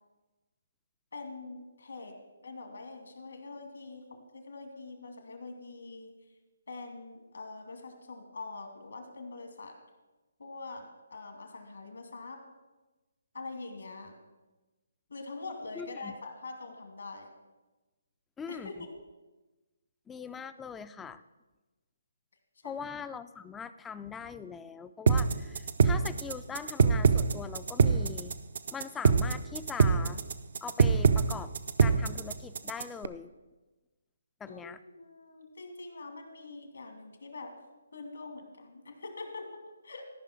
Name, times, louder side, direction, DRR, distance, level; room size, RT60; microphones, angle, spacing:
voice 1, 1.1-2.1 2.4-6.1 6.7-9.8 10.4-12.4 13.3-14.1 15.1-17.3 18.5-18.9 22.6-22.9 34.5-37.5 37.9-40.0, left 3 dB, 75° left, 4 dB, 2.2 m, -44 dB
voice 2, 15.8-16.1 18.4-18.7 20.1-21.2 22.6-28.3 28.7-30.2 30.6-31.5 31.8-33.3 34.4-34.8, left 6 dB, 10° left, 13 dB, 0.4 m, -41 dB
sound 1, 25.1-33.0, right 5 dB, 55° right, 0.5 m, -24 dB
13.5 x 5.5 x 6.1 m, 1.1 s
figure-of-eight pair, 145°, 0 cm